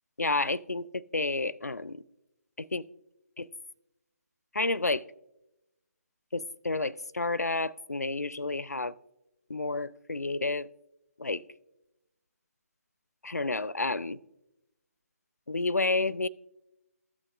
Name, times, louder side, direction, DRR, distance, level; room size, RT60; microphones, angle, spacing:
voice 1, 0.2-2.0 2.6-2.9 3.4-3.5 4.5-5.0 6.3-9.0 9.5-10.7 11.2-11.4 13.2-14.2 15.5-16.3, left 3 dB, 90° left, 20 dB, 0.4 m, -30 dB
15.0 x 6.0 x 2.4 m, 0.93 s
figure-of-eight pair, 145°, 8 cm